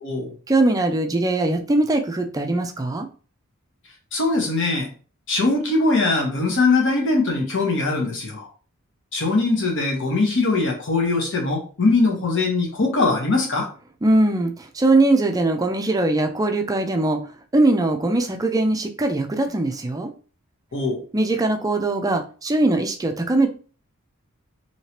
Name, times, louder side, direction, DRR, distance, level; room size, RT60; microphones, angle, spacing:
voice 1, 0.5-3.1 14.0-17.2 17.5-20.1 21.1-23.5, right 2 dB, 15° right, 5 dB, 0.4 m, -21 dB
voice 2, 4.1-4.9 5.3-8.5 9.1-13.7 20.7-21.0, left 3 dB, 65° left, 0 dB, 1.1 m, -21 dB
3.0 x 2.8 x 2.9 m, 0.38 s
head